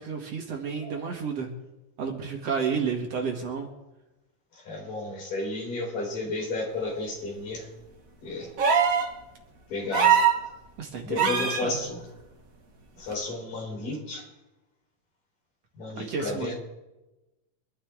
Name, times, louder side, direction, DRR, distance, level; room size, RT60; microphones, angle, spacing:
voice 1, 0.0-1.5 2.0-3.7 10.8-11.8 16.1-16.5, right 6 dB, 55° right, 2 dB, 2.5 m, -31 dB
voice 2, 4.7-7.7 8.2-8.5 9.7-10.2 11.0-12.0 13.0-14.2 15.8-16.5, left 2 dB, 75° left, -1 dB, 6.0 m, -32 dB
sound 1, 8.6-9.1 9.9-10.4 11.2-11.6 13.1-13.2, right 7 dB, 90° right, 0.7 m, -21 dB
25.0 x 12.5 x 3.7 m, 1.0 s
omnidirectional pair, 3.8 m